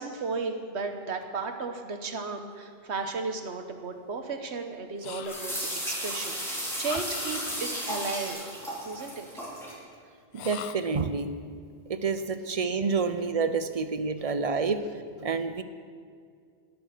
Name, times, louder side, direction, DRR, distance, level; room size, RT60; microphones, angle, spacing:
voice 1, 0.0-5.6 5.8-8.5 8.8-9.3, right 4 dB, 70° right, 6 dB, 1.4 m, -34 dB
sound 1, 2.5-3.1 5.2-6.6 7.6-8.3, equal, 25° left, 2.6 m, -51 dB
sound 2, 5.0-5.8 6.8-8.0 10.3-11.1, left 10 dB, 70° left, 0.8 m, -41 dB
sound 3, 5.2-9.7, equal, ahead, 3.5 m, -34 dB
voice 2, 10.3-11.3 11.9-14.8 15.2-15.6, right 4 dB, 40° right, 10 dB, 0.6 m, -28 dB
20.0 x 6.9 x 6.6 m, 2.1 s
omnidirectional pair, 1.2 m